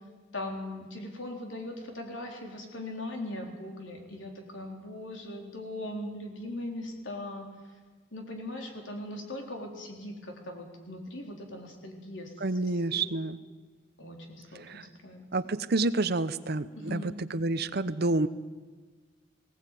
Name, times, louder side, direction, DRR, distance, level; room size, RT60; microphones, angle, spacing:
voice 1, 0.3-7.5 8.1-12.3 12.6-13.2 14.0-15.3 16.8-17.2, left 1 dB, 70° left, 2 dB, 4.0 m, -40 dB
voice 2, 12.4-13.4 14.6-14.9 15.3-18.3, right 2 dB, 55° right, 14 dB, 0.8 m, -29 dB
19.0 x 18.0 x 9.3 m, 1.4 s
head